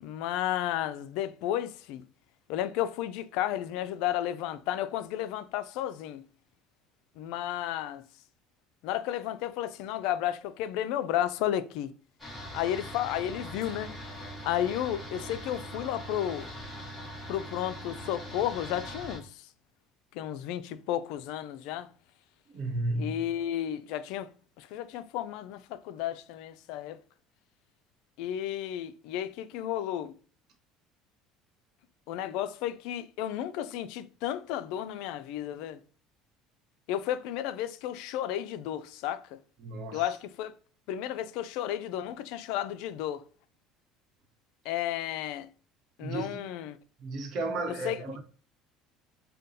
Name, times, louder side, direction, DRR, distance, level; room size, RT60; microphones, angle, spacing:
voice 1, 0.0-2.0 2.5-6.2 7.2-8.0 8.8-11.9 12.5-13.9 14.5-16.5 17.3-19.5 20.1-21.9 23.0-24.3 24.6-27.0 28.2-30.1 32.1-35.8 36.9-39.4 39.9-40.5 40.9-43.2 44.6-45.5 46.0-46.8 47.8-48.0, left 11 dB, 75° left, 0.3 m, -33 dB
sound 1, 12.2-19.2, equal, 5° left, 1.4 m, -41 dB
voice 2, 22.5-23.2 39.6-40.0 46.0-46.4 47.0-48.2, right 2 dB, 55° right, 1.0 m, -33 dB
5.0 x 2.3 x 2.7 m
cardioid pair, 120°, 0 cm